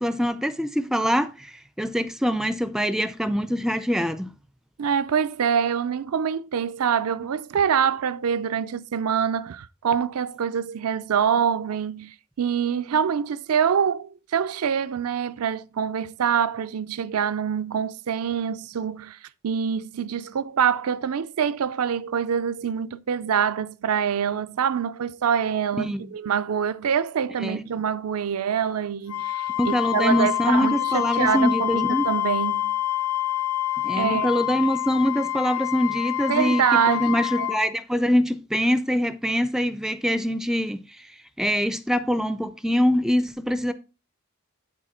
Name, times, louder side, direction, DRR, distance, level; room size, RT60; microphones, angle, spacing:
voice 1, 0.0-4.3 25.8-26.1 27.4-27.7 29.6-32.1 33.8-41.1 41.4-43.7, equal, ahead, 0.4 m, -24 dB
voice 2, 4.8-19.2 19.4-32.7 34.0-34.3 36.3-37.5, right 7 dB, 85° right, 0.5 m, -25 dB
Wind instrument woodwind instrument, 29.1-37.7, left 14 dB, 85° left, 0.9 m, -27 dB
10.5 x 4.1 x 4.3 m
head